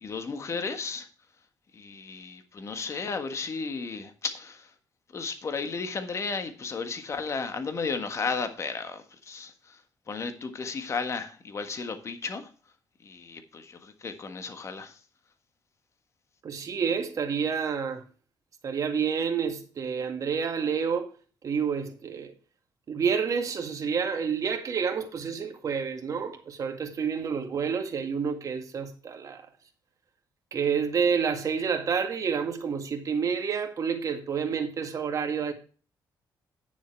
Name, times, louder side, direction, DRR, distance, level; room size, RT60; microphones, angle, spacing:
voice 1, 0.0-1.1 1.7-4.7 5.1-9.8 10.1-12.5 13.0-15.0, left 4 dB, 40° left, 1.6 m, -34 dB
voice 2, 16.4-18.0 18.6-21.1 21.4-22.3 22.9-29.5 30.5-35.5, right 6 dB, 45° right, 2.0 m, -29 dB
9.6 x 7.1 x 4.6 m
cardioid pair, 115°, 8 cm